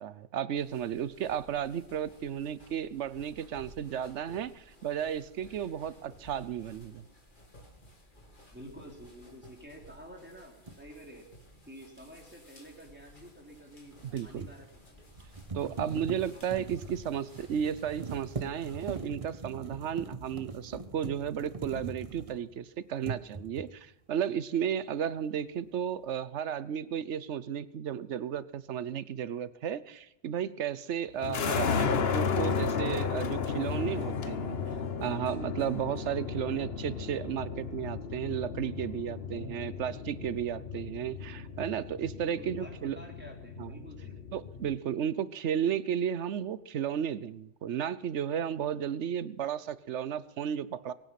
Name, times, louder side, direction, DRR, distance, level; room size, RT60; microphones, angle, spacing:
voice 1, 0.0-7.0 14.0-14.5 15.5-34.6 35.0-43.0 43.6-43.7 44.3-50.9, right 9 dB, 85° right, 16 dB, 1.1 m, -34 dB
sound 1, 0.6-19.0, left 1 dB, 45° left, 3.0 m, -56 dB
voice 2, 8.5-11.3 11.7-15.0 42.2-44.2, equal, 10° right, 0 dB, 3.5 m, -50 dB
sound 2, 10.7-10.8 13.9-22.6 23.0-23.8, right 4 dB, 30° right, 1.0 m, -42 dB
sound 3, 31.2-44.8, left 6 dB, 65° left, 1.2 m, -34 dB
23.0 x 9.2 x 5.9 m, 0.91 s
omnidirectional pair, 1.2 m